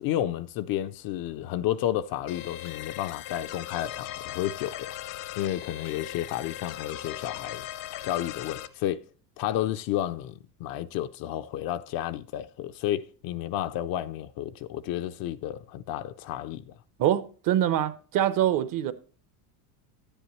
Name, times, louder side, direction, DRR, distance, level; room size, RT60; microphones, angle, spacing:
voice 1, 0.0-4.9 5.4-7.7 8.0-9.0 9.4-16.7, left 12 dB, 45° left, 0.5 m, -31 dB
sound 1, 2.3-8.7, left 13 dB, 65° left, 0.9 m, -39 dB
voice 2, 17.0-18.9, right 11 dB, 45° right, 0.7 m, -24 dB
10.0 x 9.7 x 3.1 m
supercardioid pair, 115°, 49 cm